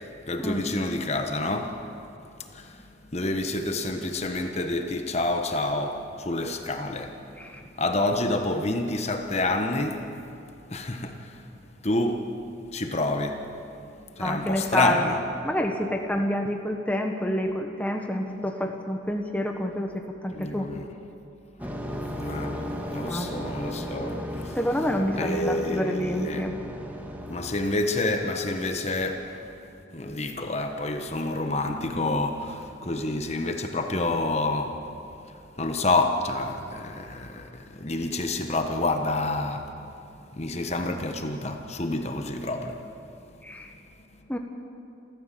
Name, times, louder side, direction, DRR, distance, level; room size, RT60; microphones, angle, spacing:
voice 1, 0.3-1.8 2.5-2.8 3.1-7.2 7.8-10.0 10.7-11.4 11.8-12.3 12.7-13.5 13.8-15.2 20.3-20.9 21.6-21.7 22.2-22.6 22.9-24.6 25.1-26.4 27.3-29.5 29.9-34.8 35.6-39.9 40.3-42.8, left 2 dB, 35° left, 1.3 m, -28 dB
voice 2, 14.2-15.2 15.4-20.7 23.1-23.4 24.5-26.6 43.4-43.7 44.3-44.4, equal, 10° left, 1.3 m, -28 dB
sound 1, 21.6-27.7, equal, 10° right, 1.7 m, -35 dB
28.0 x 14.0 x 7.7 m
head